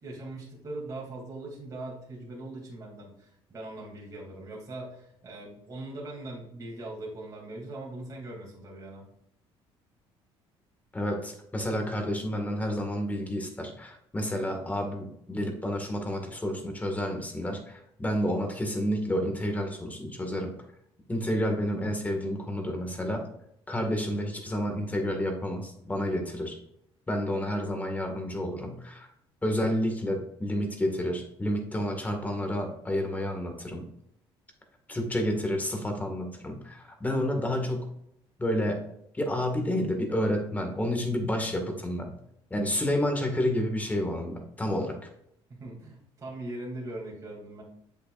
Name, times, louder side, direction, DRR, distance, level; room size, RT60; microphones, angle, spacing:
voice 1, 0.0-9.0 45.5-47.6, right 2 dB, 30° right, -4 dB, 2.8 m, -40 dB
voice 2, 10.9-20.6 21.1-23.2 23.7-26.6 27.1-29.1 29.4-33.8 34.9-37.9 38.4-38.8 39.2-42.1 42.5-45.0, equal, 15° left, 3 dB, 1.9 m, -30 dB
7.6 x 7.1 x 2.5 m, 0.73 s
cardioid pair, 110°, 10 cm